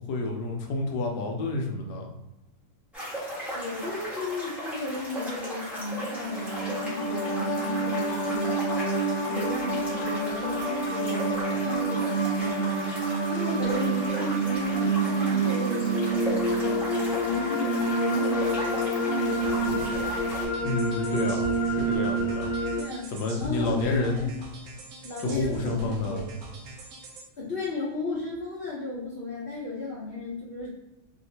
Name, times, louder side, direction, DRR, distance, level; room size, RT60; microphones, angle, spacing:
voice 1, 0.0-2.1 20.6-22.5 23.1-24.2 25.2-26.3, left 3 dB, 70° left, 1 dB, 1.0 m, -29 dB
sound 1, 2.9-20.5, equal, ahead, 0.8 m, -37 dB
voice 2, 3.5-8.5 9.1-12.9 13.3-16.8 17.1-20.1 22.8-23.1 23.4-24.4 25.0-26.3 27.4-30.7, left 3 dB, 50° left, -8 dB, 0.6 m, -34 dB
sound 2, 5.9-22.8, right 3 dB, 90° left, 1.5 m, -28 dB
sound 3, 19.4-27.2, right 3 dB, 75° right, 0.8 m, -42 dB
3.2 x 2.8 x 2.7 m, 0.95 s
omnidirectional pair, 2.3 m